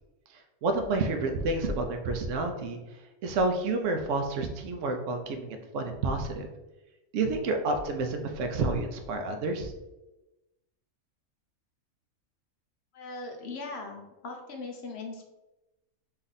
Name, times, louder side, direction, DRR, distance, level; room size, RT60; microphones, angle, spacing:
voice 1, 0.6-2.8 3.2-6.5 7.1-9.7, right 3 dB, 65° right, 4 dB, 0.9 m, -29 dB
voice 2, 12.9-15.3, left 3 dB, 60° left, 2 dB, 0.8 m, -39 dB
4.2 x 2.6 x 3.9 m, 1.0 s
omnidirectional pair, 1.5 m